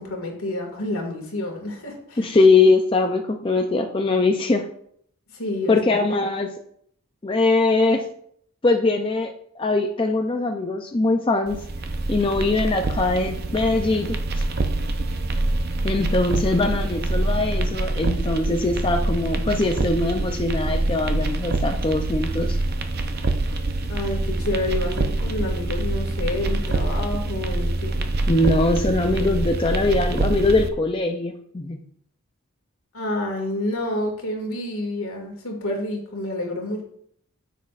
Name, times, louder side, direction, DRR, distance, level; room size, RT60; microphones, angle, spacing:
voice 1, 0.0-2.2 5.3-5.8 23.9-28.0 32.9-36.8, left 1 dB, 75° left, 1 dB, 2.1 m, -29 dB
voice 2, 2.2-4.7 5.7-6.5 7.2-8.0 8.6-11.6 12.1-14.4 15.8-22.6 28.3-31.8, left 3 dB, 25° left, 3 dB, 0.4 m, -21 dB
sound 1, 11.5-30.7, right 2 dB, 45° right, 0.5 m, -25 dB
9.9 x 7.3 x 2.5 m, 0.67 s
head